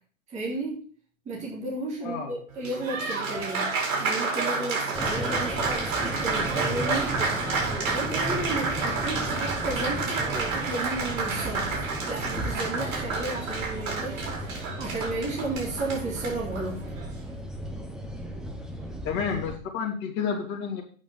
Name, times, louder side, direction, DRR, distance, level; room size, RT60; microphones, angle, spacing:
voice 1, 0.3-0.8 1.2-7.5 7.9-11.8 12.0-16.8, right 2 dB, 15° right, -2 dB, 3.2 m, -33 dB
voice 2, 2.0-2.3 19.0-20.8, left 6 dB, 30° left, -2 dB, 3.1 m, -30 dB
Applause, 2.5-17.2, right 4 dB, 70° right, 4.9 m, -30 dB
sound 1, 4.9-19.6, equal, ahead, 0.8 m, -35 dB
8.8 x 6.1 x 7.2 m, 0.43 s
hypercardioid pair, 145°, 40 cm